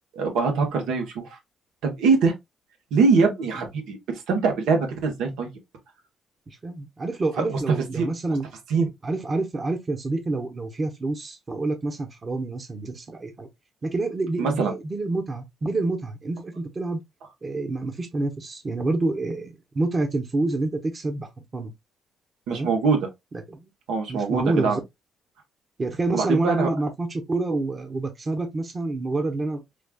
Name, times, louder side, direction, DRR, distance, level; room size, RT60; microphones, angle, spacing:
voice 1, 0.1-1.4 1.8-2.3 2.9-5.5 7.4-7.6 7.9-8.1 8.7-8.9 14.4-14.7 22.5-23.0 23.9-24.8 26.1-26.7, right 4 dB, 90° right, 1.1 m, -23 dB
voice 2, 6.5-8.5 9.0-13.5 13.8-17.0 17.4-21.7 22.5-22.7 23.5-23.7 24.1-24.8 25.8-29.6, right 2 dB, 35° right, 0.9 m, -27 dB
5.0 x 2.4 x 2.3 m
cardioid pair, 90°, 0 cm